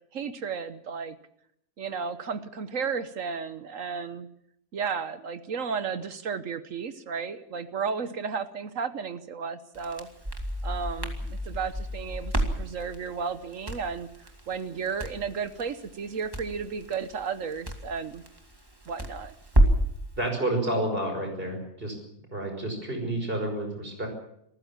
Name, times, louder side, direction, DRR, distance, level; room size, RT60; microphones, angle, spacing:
voice 1, 0.1-1.2 1.8-4.3 4.7-10.1 10.6-14.1 14.5-18.2 18.9-19.3, right 6 dB, 60° right, 12 dB, 1.3 m, -33 dB
Crackle, 9.7-20.0, right 1 dB, 15° right, 2.3 m, -30 dB
voice 2, 20.2-22.0 22.3-24.1, right 1 dB, 35° right, 4 dB, 5.7 m, -30 dB
26.0 x 14.5 x 7.4 m, 0.73 s
omnidirectional pair, 1.6 m